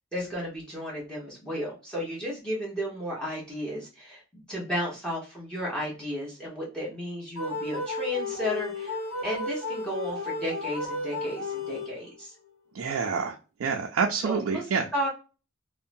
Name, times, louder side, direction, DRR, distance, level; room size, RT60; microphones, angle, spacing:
voice 1, 0.1-9.0 9.2-12.3 14.2-15.1, equal, 5° left, -5 dB, 1.0 m, -33 dB
sound 1, 7.4-12.2, left 2 dB, 70° left, 1.0 m, -33 dB
voice 2, 12.7-14.9, right 5 dB, 75° right, 2 dB, 0.4 m, -28 dB
2.7 x 2.1 x 2.5 m, 0.33 s
head